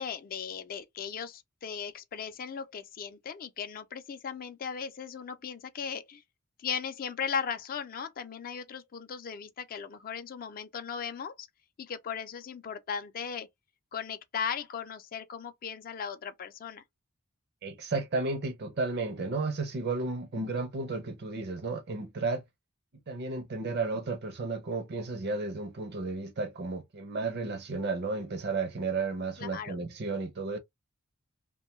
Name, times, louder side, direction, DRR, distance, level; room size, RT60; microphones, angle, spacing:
voice 1, 0.0-6.2 6.6-11.5 11.8-13.5 13.9-16.8 29.4-29.8, left 7 dB, 40° left, 0.4 m, -37 dB
voice 2, 17.6-22.4 23.1-30.6, right 3 dB, 50° right, 0.6 m, -33 dB
2.6 x 2.2 x 3.0 m
head